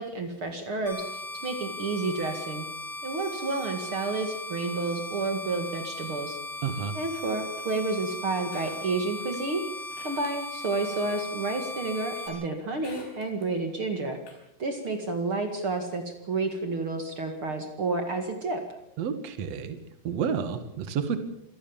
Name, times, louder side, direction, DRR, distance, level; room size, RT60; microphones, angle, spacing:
voice 1, 0.0-2.7 3.0-6.4 6.9-9.6 10.0-14.2 14.6-18.6, right 3 dB, 50° right, 6 dB, 1.6 m, -30 dB
sound 1, 0.9-12.3, left 2 dB, 25° left, 8.3 m, -38 dB
voice 2, 6.6-6.9 19.0-19.8 20.0-21.2, right 7 dB, 85° right, 9 dB, 1.4 m, -30 dB
sound 2, 8.5-9.4 9.9-10.3 10.7-10.8 12.1-12.4 12.8-13.5 14.3-14.4, left 4 dB, 90° left, 7.1 m, -49 dB
27.0 x 18.0 x 7.2 m, 0.80 s
omnidirectional pair, 5.7 m